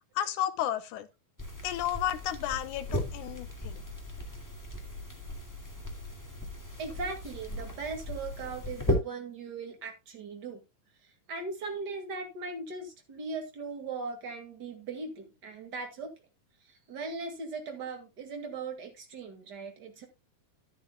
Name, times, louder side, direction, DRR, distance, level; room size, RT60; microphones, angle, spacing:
voice 1, 0.2-1.1 1.6-3.8, left 11 dB, 75° left, 2.0 m, -32 dB
sound 1, 1.4-8.9, left 1 dB, 10° left, 1.2 m, -37 dB
voice 2, 6.8-10.6 11.3-16.1 16.7-20.1, right 4 dB, 35° right, 2.2 m, -39 dB
11.5 x 11.0 x 2.3 m
omnidirectional pair, 4.0 m